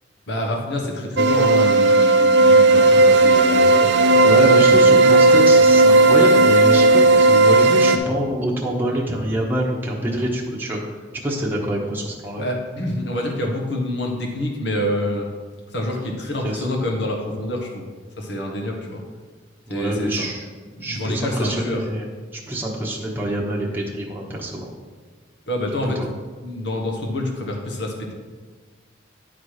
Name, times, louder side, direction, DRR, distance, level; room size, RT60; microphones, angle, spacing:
voice 1, 0.3-4.8 12.4-15.3 15.7-17.9 18.2-19.0 19.7-20.3 20.8-21.8 25.5-26.0 26.4-28.1, left 1 dB, 65° left, 1 dB, 1.4 m, -27 dB
sound 1, 1.2-8.0, right 2 dB, 65° right, 0.5 m, -13 dB
voice 2, 4.2-10.8 11.2-12.4 16.4-16.6 19.7-20.4 20.8-22.1 22.3-24.7 25.8-26.1, right 1 dB, 10° right, -3 dB, 1.0 m, -25 dB
10.0 x 4.2 x 4.8 m, 1.5 s
head